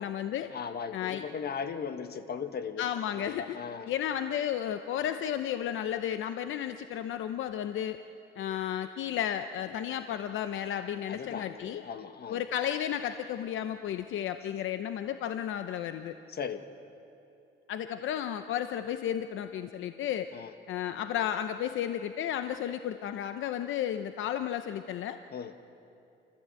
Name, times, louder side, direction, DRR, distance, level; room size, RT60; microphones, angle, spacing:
voice 1, 0.0-0.5 0.9-1.3 2.8-3.6 3.8-8.0 8.4-11.8 12.3-16.1 17.7-20.3 20.7-25.2, left 10 dB, 80° left, 9 dB, 0.8 m, -33 dB
voice 2, 0.5-2.9 3.2-3.9 11.1-12.4 16.3-16.6 20.3-20.5 25.3-25.5, left 6 dB, 55° left, 8 dB, 1.4 m, -37 dB
29.5 x 14.0 x 8.3 m, 2.7 s
cardioid pair, 90°, 20 cm